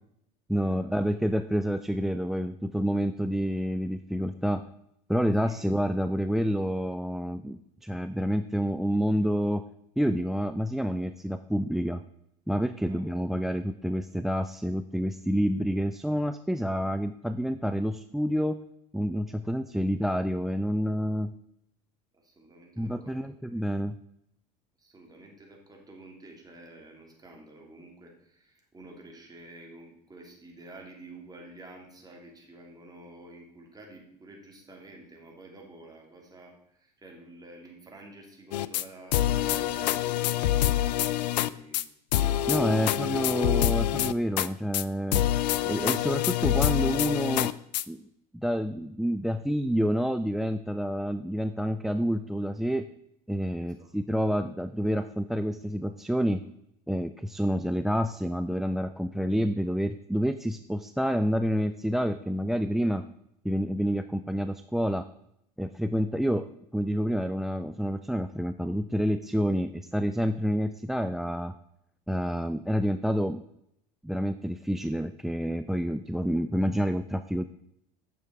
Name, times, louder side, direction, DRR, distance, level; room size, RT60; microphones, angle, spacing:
voice 1, 0.5-4.6 5.1-9.6 10.0-12.0 12.5-18.6 18.9-21.3 22.8-24.0 42.5-45.2 45.7-47.5 47.9-48.0 48.3-52.9 53.3-56.4 56.9-63.0 63.4-65.1 65.6-66.5 66.7-71.5 72.1-73.4 74.0-77.4, equal, ahead, 12 dB, 0.3 m, -28 dB
voice 2, 5.3-5.6 12.8-13.0 19.8-19.9 22.1-23.7 24.8-40.4 41.0-41.9 53.6-53.9, right 2 dB, 20° right, 0 dB, 3.0 m, -50 dB
sound 1, 38.5-38.8 39.1-41.5 41.7-41.8 42.1-44.5 44.7-44.8 45.1-47.8, left 13 dB, 85° left, 0.4 m, -26 dB
9.0 x 6.6 x 4.7 m, 0.77 s
hypercardioid pair, 80°, 21 cm